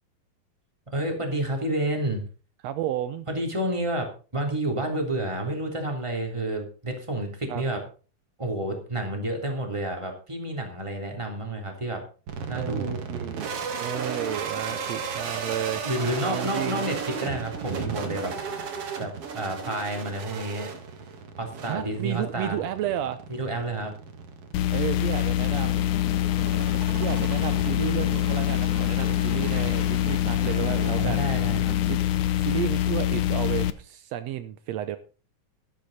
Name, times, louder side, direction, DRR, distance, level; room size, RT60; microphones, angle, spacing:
voice 1, 0.9-2.2 3.3-7.8 8.4-12.0 12.5-13.0 15.8-18.3 19.0-20.7 21.4-22.6 23.3-23.9 31.0-31.8, right 1 dB, 10° right, 2 dB, 3.0 m, -30 dB
voice 2, 2.6-3.3 7.5-7.6 12.5-15.8 16.2-16.9 21.6-23.2 24.7-25.9 27.0-31.2 31.9-32.0 32.4-35.0, right 12 dB, 90° right, 11 dB, 1.4 m, -32 dB
sound 1, 12.3-31.5, right 5 dB, 50° right, 2.4 m, -36 dB
sound 2, 24.5-33.7, left 12 dB, 75° left, 2.0 m, -25 dB
sound 3, 25.4-32.0, left 7 dB, 45° left, 1.3 m, -39 dB
13.0 x 11.5 x 4.2 m, 0.36 s
omnidirectional pair, 4.0 m